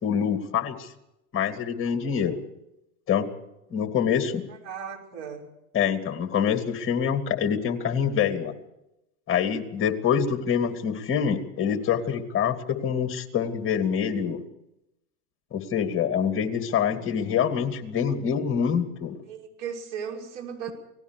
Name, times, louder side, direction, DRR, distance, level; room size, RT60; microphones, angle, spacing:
voice 1, 0.0-0.9 1.3-2.4 3.1-3.3 3.7-4.4 5.7-8.5 9.3-14.4 15.5-19.2, left 7 dB, 30° left, 7 dB, 2.6 m, -25 dB
voice 2, 4.5-5.5 19.3-20.7, right 7 dB, 45° right, 2 dB, 5.7 m, -36 dB
29.0 x 19.0 x 4.8 m, 0.88 s
hypercardioid pair, 115°, 44 cm